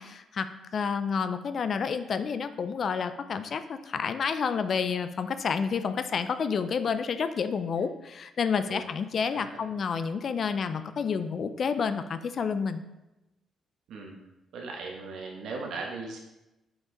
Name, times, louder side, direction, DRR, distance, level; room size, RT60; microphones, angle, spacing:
voice 1, 0.0-12.8, left 6 dB, 50° left, 10 dB, 0.4 m, -29 dB
voice 2, 9.3-9.6 10.0-10.1 13.9-14.2 14.5-16.2, right 4 dB, 75° right, 0 dB, 1.1 m, -38 dB
5.9 x 5.2 x 3.8 m, 0.97 s
cardioid pair, 90°, 0 cm